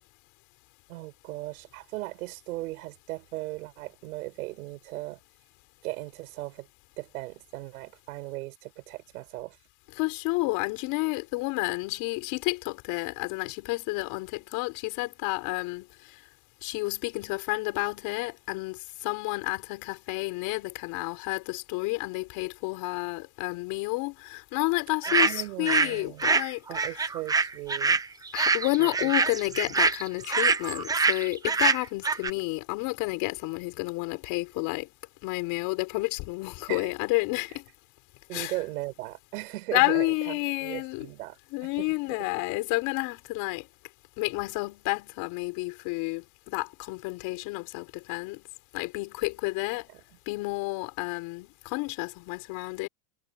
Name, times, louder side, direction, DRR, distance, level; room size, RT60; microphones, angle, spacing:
voice 1, 0.9-5.2 5.8-6.7 7.0-9.6 25.1-26.3 26.7-28.0 28.8-29.1 36.7-36.9 38.3-42.3 49.9-50.2, right 19 dB, 85° right, 7.1 m, -38 dB
voice 2, 10.0-15.9 16.6-26.9 28.3-34.9 35.2-37.6 38.3-38.5 39.7-41.1 41.5-43.7 44.2-48.4 48.7-49.9 50.3-52.9, left 24 dB, 55° left, 5.4 m, -30 dB
sound 1, 25.0-25.9 26.2-32.3, right 4 dB, 10° right, 0.8 m, -25 dB
supercardioid pair, 155°, 42 cm